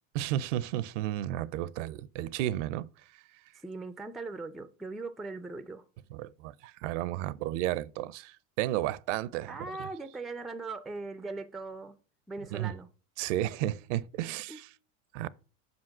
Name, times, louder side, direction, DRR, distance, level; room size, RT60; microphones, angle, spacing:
voice 1, 0.1-2.9 6.1-9.6 12.5-12.7 13.2-14.7 15.1-15.3, right 13 dB, 70° right, 0.6 m, -33 dB
voice 2, 3.6-5.8 9.5-12.0 12.3-12.9 14.2-14.6, right 3 dB, ahead, 0.3 m, -40 dB
5.5 x 5.2 x 6.0 m
hypercardioid pair, 100°, 39 cm